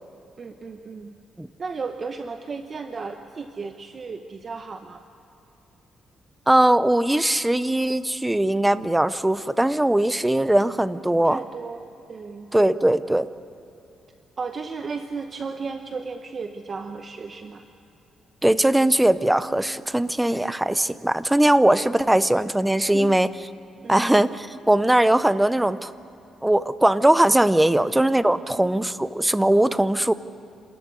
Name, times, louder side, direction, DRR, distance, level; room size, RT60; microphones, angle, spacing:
voice 1, 0.4-1.1 1.6-5.0 11.2-12.5 14.4-17.6 22.0-22.2 22.9-23.2 23.8-24.0 27.7-27.9 28.5-28.6, right 4 dB, 30° right, 6 dB, 0.8 m, -34 dB
voice 2, 6.5-11.4 12.5-13.3 18.4-23.3 23.9-25.9 26.4-30.1, right 1 dB, 5° right, 14 dB, 0.5 m, -20 dB
27.0 x 14.0 x 9.5 m, 3.0 s
cardioid pair, 155°, 0 cm